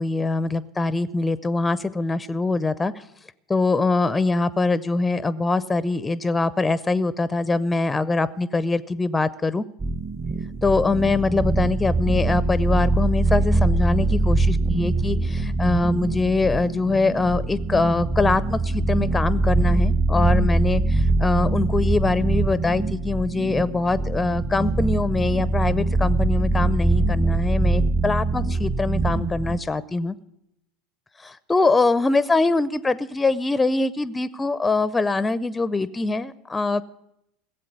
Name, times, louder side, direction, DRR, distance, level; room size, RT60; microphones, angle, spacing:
voice 1, 0.0-3.0 3.5-9.6 10.6-30.2 31.2-36.8, left 3 dB, 15° left, 18 dB, 0.5 m, -23 dB
sound 1, 9.8-29.6, right 2 dB, 25° right, 0.9 m, -23 dB
17.0 x 7.7 x 8.1 m, 0.83 s
figure-of-eight pair, 75°, 0 cm